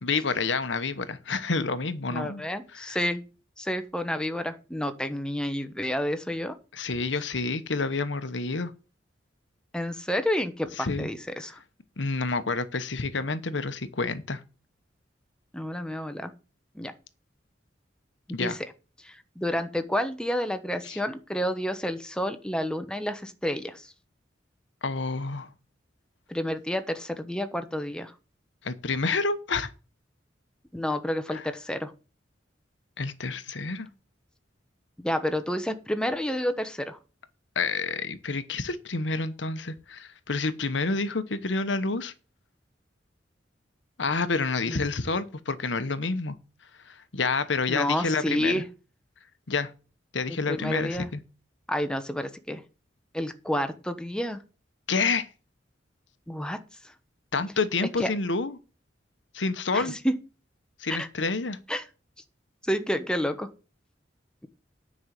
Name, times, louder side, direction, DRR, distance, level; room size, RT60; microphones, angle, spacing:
voice 1, 0.0-2.4 2.7-3.0 6.7-8.7 10.8-11.1 11.4-11.5 12.0-14.4 18.3-18.6 20.8-21.0 24.8-25.5 28.6-29.7 31.3-31.4 33.0-33.9 37.5-42.1 44.0-46.4 46.8-48.6 49.5-49.7 50.1-51.2 54.9-55.3 57.3-58.6 59.3-60.0 60.8-61.6, left 4 dB, 80° left, 1.1 m, -28 dB
voice 2, 2.1-3.2 3.6-6.5 9.7-11.6 15.5-16.3 16.7-16.9 18.4-18.6 19.0-23.9 26.3-28.1 30.7-31.9 35.0-37.0 44.7-44.9 47.7-48.6 50.3-51.1 51.7-52.6 53.1-54.4 56.3-56.6 58.0-58.1 59.7-60.2 60.9-61.1 61.7-61.8 62.6-63.5, equal, 5° left, 1.0 m, -29 dB
9.7 x 5.4 x 7.6 m
head